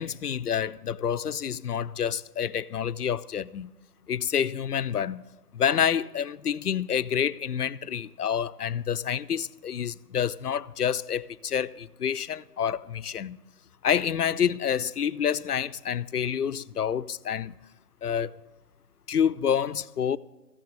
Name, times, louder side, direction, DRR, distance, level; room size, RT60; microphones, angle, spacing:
voice 1, 0.0-3.7 4.1-5.2 5.5-13.4 13.8-17.6 18.0-18.4 19.1-20.2, left 8 dB, 75° left, 0.6 m, -28 dB
15.0 x 6.2 x 8.8 m
figure-of-eight pair, 175°, 46 cm